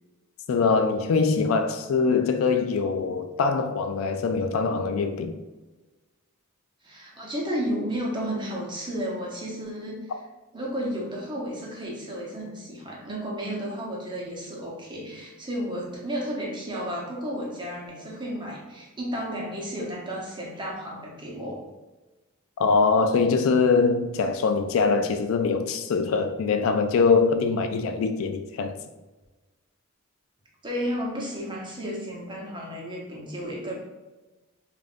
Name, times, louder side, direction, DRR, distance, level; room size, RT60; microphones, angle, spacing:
voice 1, 0.5-5.3 22.6-28.7, left 4 dB, 70° left, 0.3 m, -23 dB
voice 2, 6.8-10.1 10.5-21.6 30.6-33.7, equal, 20° right, 0.8 m, -32 dB
5.2 x 2.5 x 2.5 m
head